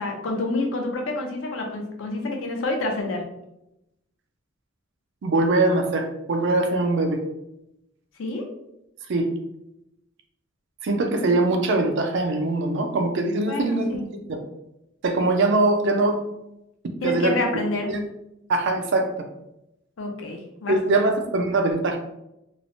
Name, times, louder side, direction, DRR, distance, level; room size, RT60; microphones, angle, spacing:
voice 1, 0.0-3.3 8.2-8.4 13.4-14.0 17.0-17.9 20.0-21.0, left 2 dB, 80° left, 2 dB, 0.6 m, -28 dB
voice 2, 5.2-7.2 9.1-9.3 10.8-14.4 15.0-16.2 17.0-17.3 17.9-18.0 18.5-19.1 20.7-22.0, right 2 dB, 65° right, 5 dB, 0.4 m, -22 dB
3.1 x 2.0 x 2.6 m, 0.86 s
head